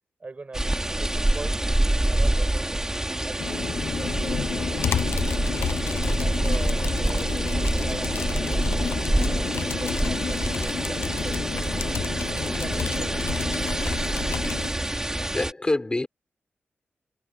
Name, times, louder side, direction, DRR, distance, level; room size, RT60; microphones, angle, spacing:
voice 1, 0.2-2.9 3.2-5.8 6.2-8.7 9.1-12.1 12.4-13.5, right 3 dB, 35° right, 6.5 m, -41 dB
sound 1, 0.5-15.5, right 1 dB, 15° right, 3.2 m, -26 dB
sound 2, 1.1-11.1, left 4 dB, 50° left, 7.1 m, -51 dB
sound 3, 3.4-14.7, left 8 dB, 90° left, 0.6 m, -31 dB
voice 2, 15.3-16.1, left 2 dB, 20° left, 3.4 m, -26 dB
wide cardioid pair, 105°, 4 cm